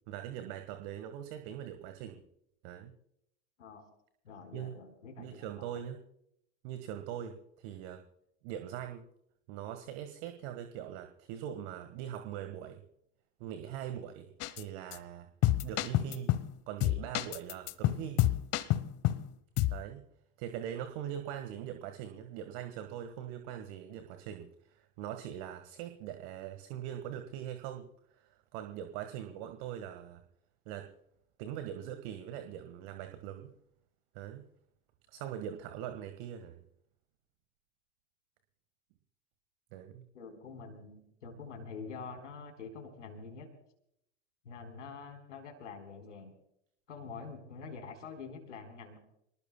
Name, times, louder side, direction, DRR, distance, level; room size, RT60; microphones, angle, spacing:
voice 1, 0.1-2.2 2.6-2.9 4.5-4.7 5.2-6.0 6.6-8.0 8.4-9.0 9.5-12.8 13.4-15.3 15.6-16.3 16.7-18.3 19.7-20.0 20.4-27.9 28.1-30.2 30.7-30.9 31.4-33.5 34.1-34.5 35.1-36.6 39.7-40.0, right 10 dB, 55° right, 8 dB, 1.7 m, -42 dB
voice 2, 4.2-5.8 40.1-43.5 44.4-46.3 46.9-49.0, left 5 dB, 75° left, 4 dB, 4.1 m, -46 dB
sound 1, 14.4-14.6 14.9-15.0 15.4-16.5 16.8-19.3 19.6-19.8, left 14 dB, 40° left, 1.1 m, -29 dB
28.0 x 20.0 x 2.2 m, 0.75 s
figure-of-eight pair, 80°, 37 cm